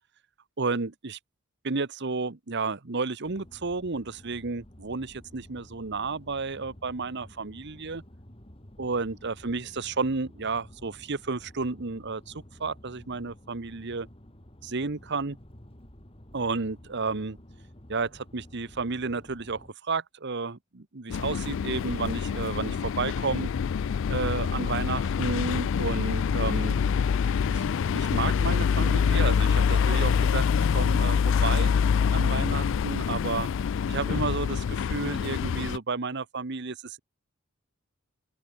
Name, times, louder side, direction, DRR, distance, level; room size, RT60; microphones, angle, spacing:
voice 1, 0.6-1.2 1.6-8.0 8.8-14.1 14.6-15.4 16.3-17.4 17.9-23.5 24.1-26.8 27.5-27.6 27.9-31.7 32.1-33.5 33.9-37.0, right 4 dB, 55° right, 1.1 m, -32 dB
sound 1, 3.2-19.7, equal, 30° left, 2.9 m, -51 dB
sound 2, 21.1-35.8, left 6 dB, 65° left, 0.4 m, -25 dB
open air
head